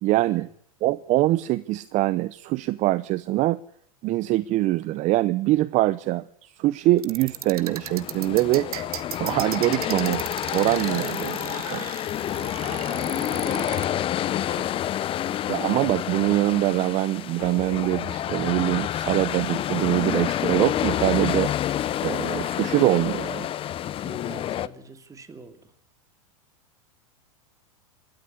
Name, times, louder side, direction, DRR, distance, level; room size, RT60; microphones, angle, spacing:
voice 1, 0.0-0.5 0.8-3.6 4.0-8.7 9.2-10.3 10.5-11.8 15.5-21.5 22.0-23.5, right 17 dB, 40° right, 0.8 m, -23 dB
Comb Tooth FX, 7.0-13.9, right 11 dB, 80° right, 1.6 m, -36 dB
sound 1, 7.4-24.7, left 12 dB, 30° left, 0.8 m, -28 dB
voice 2, 12.3-14.9 24.0-25.7, right 4 dB, 15° right, 2.7 m, -43 dB
27.5 x 13.0 x 8.4 m
hypercardioid pair, 115°, 19 cm